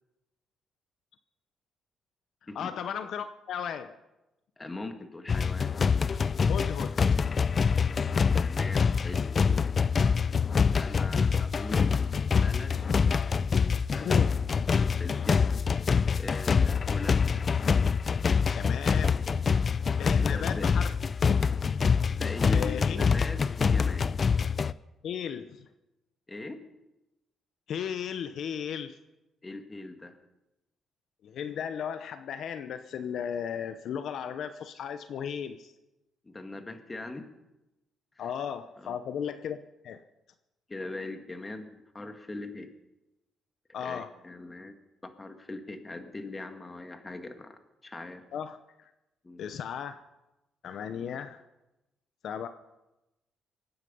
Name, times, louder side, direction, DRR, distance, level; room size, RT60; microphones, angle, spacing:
voice 1, 2.5-4.0 6.5-7.0 14.0-14.4 18.6-19.3 20.0-20.9 21.3-21.4 22.5-23.0 25.0-25.7 27.7-29.0 31.2-35.7 38.2-39.6 39.8-40.0 43.7-44.1 48.3-48.9 49.4-50.0 50.6-51.4 52.2-52.5, left 8 dB, 70° left, 10 dB, 0.8 m, -35 dB
voice 2, 4.6-5.8 8.4-9.7 10.8-12.8 13.3-13.4 13.9-14.2 14.5-15.4 16.1-17.4 20.2-20.9 22.1-24.1 26.3-26.6 29.4-30.2 36.3-37.3 38.2-38.3 38.8-39.0 40.7-42.7 43.8-44.8 45.0-48.2 49.2-49.5, left 2 dB, 20° left, 7 dB, 1.9 m, -41 dB
sound 1, 5.3-24.7, left 5 dB, 40° left, 0.4 m, -25 dB
24.0 x 9.7 x 5.5 m, 0.96 s
cardioid pair, 90°, 0 cm